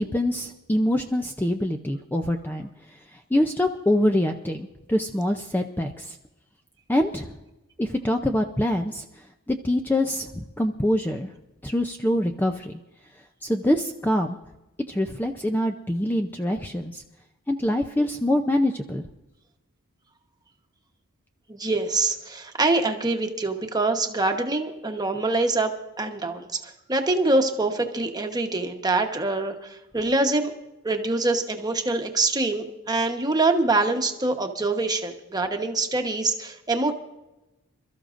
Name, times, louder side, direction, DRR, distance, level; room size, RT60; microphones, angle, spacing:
voice 1, 0.0-2.7 3.1-6.2 6.9-7.3 7.8-9.0 9.5-11.3 11.6-12.7 13.4-14.4 14.9-17.0 17.5-19.0, left 1 dB, 10° left, 5 dB, 0.5 m, -25 dB
voice 2, 21.5-25.7 26.0-26.5 26.9-30.5 30.8-36.9, right 2 dB, 20° right, 4 dB, 1.1 m, -24 dB
27.5 x 13.5 x 2.6 m, 0.98 s
head